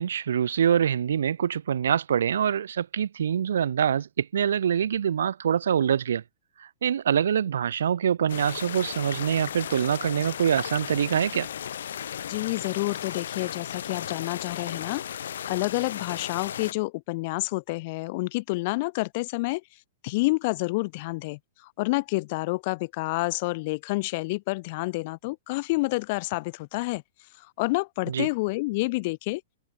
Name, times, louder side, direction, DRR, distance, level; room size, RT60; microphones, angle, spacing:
voice 1, 0.0-6.2 6.6-11.5 28.1-28.3, right 8 dB, 85° right, 1.0 m, -25 dB
sound 1, 8.3-16.7, left 9 dB, 80° left, 2.0 m, -35 dB
voice 2, 12.2-15.0 15.5-19.6 20.0-27.0 27.4-29.4, left 24 dB, 40° left, 1.3 m, -29 dB
hypercardioid pair, 165°, 0 cm